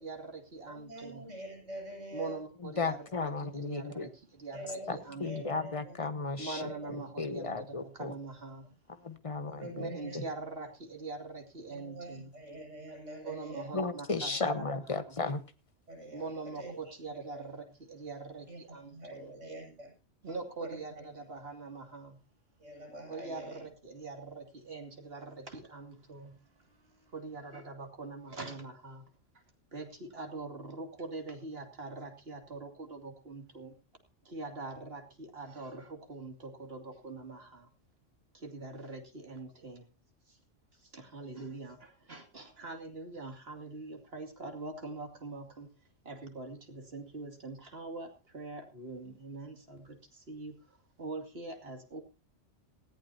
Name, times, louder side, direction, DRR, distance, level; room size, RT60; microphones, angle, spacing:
voice 1, 0.0-1.3 2.1-5.5 6.4-8.7 9.8-12.4 13.2-14.7 15.1-15.2 16.1-19.3 20.2-22.2 23.1-26.4 26.7-29.0 29.7-33.8 34.2-37.7 38.3-39.9 40.3-40.4 40.8-45.7 46.0-52.0, right 3 dB, 55° right, 3 dB, 2.8 m, -43 dB
voice 2, 0.7-2.4 4.5-5.9 6.6-7.0 9.5-10.3 11.7-13.7 15.9-16.8 17.1-17.5 18.5-19.9 20.6-21.1 22.6-23.6, right 1 dB, 75° right, 3 dB, 7.6 m, -45 dB
voice 3, 2.8-4.1 4.9-8.1 9.0-9.9 10.1-10.2 13.7-15.4, left 3 dB, 30° left, 10 dB, 1.2 m, -35 dB
19.0 x 15.0 x 2.8 m, 0.32 s
omnidirectional pair, 1.3 m